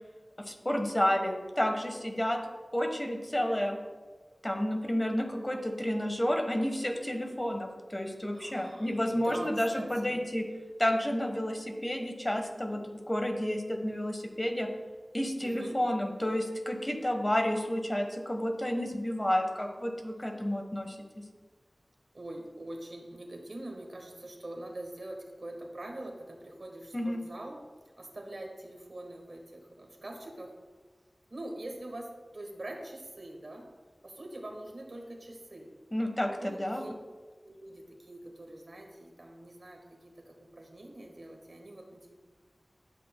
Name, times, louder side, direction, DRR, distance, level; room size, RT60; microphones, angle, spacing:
voice 1, 0.4-2.4 2.7-3.8 4.4-10.4 10.8-14.7 15.1-21.2 26.9-27.2 35.9-36.8, equal, 25° left, 4 dB, 1.2 m, -31 dB
voice 2, 8.3-10.2 15.4-15.8 22.1-27.7 28.0-30.6 31.3-33.7 34.0-35.7 36.3-36.9 37.3-42.1, right 1 dB, 65° right, 2 dB, 1.4 m, -44 dB
11.0 x 7.7 x 2.2 m, 1.4 s
wide cardioid pair, 50°, 0 cm